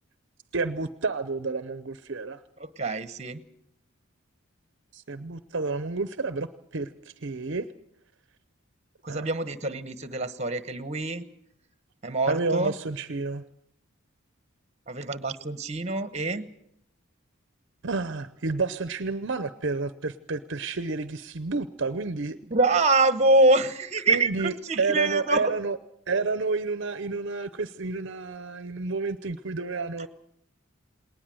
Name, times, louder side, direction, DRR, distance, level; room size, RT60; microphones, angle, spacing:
voice 1, 0.5-2.4 4.9-6.5 6.7-6.9 7.2-7.7 9.1-9.3 12.3-13.4 17.8-22.4 24.1-25.8 26.1-30.1, right 3 dB, 55° right, 13 dB, 0.7 m, -30 dB
voice 2, 2.6-3.4 9.0-11.2 12.0-12.7 14.9-16.5 22.5-25.5, right 2 dB, 30° right, 13 dB, 1.1 m, -25 dB
20.0 x 19.0 x 7.7 m, 0.76 s
head